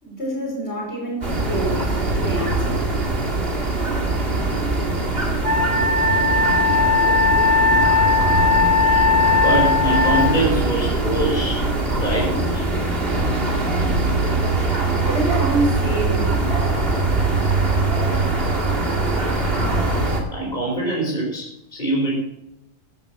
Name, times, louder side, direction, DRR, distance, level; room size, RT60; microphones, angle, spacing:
voice 1, 0.0-2.9 14.8-16.4, right 1 dB, 55° left, -2 dB, 5.9 m, -27 dB
sound 1, 1.2-20.2, right 2 dB, 45° right, 2.6 m, -22 dB
Wind instrument woodwind instrument, 5.4-10.3, left 4 dB, 25° right, 1.4 m, -18 dB
voice 2, 9.4-11.6 12.0-12.6 20.3-22.1, right 1 dB, 35° left, -3 dB, 5.0 m, -24 dB
13.5 x 12.0 x 6.1 m, 0.87 s
omnidirectional pair, 1.3 m